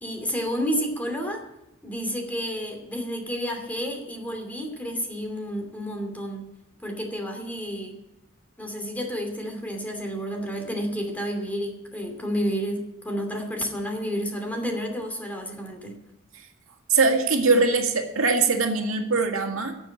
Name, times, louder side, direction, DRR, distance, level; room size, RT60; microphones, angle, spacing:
voice 1, 0.0-1.4 1.8-6.5 6.8-8.0 8.6-16.0, equal, 10° left, 2 dB, 2.7 m, -30 dB
voice 2, 16.9-19.7, right 4 dB, 90° right, 3 dB, 2.0 m, -22 dB
12.0 x 7.7 x 9.9 m, 0.85 s
head